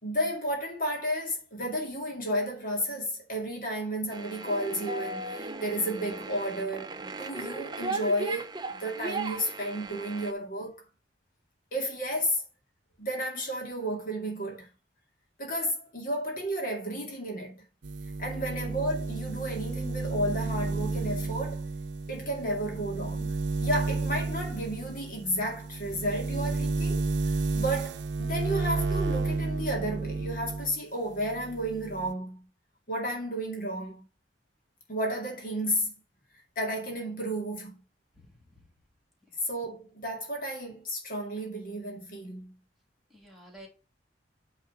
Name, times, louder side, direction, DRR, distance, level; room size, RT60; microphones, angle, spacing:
voice 1, 0.0-10.8 11.7-12.4 13.0-14.7 15.4-17.7 18.2-21.6 22.1-23.4 23.6-32.5 32.9-34.0 34.9-35.9 36.3-37.8 39.4-42.6, equal, 50° left, 2.2 m, -32 dB
sound 1, 4.1-10.3, right 3 dB, 25° right, 0.7 m, -37 dB
sound 2, 17.8-30.8 31.1-32.1, right 3 dB, 70° right, 0.6 m, -32 dB
voice 2, 38.1-38.5 43.1-43.7, equal, ahead, 2.9 m, -51 dB
8.8 x 4.0 x 5.8 m
head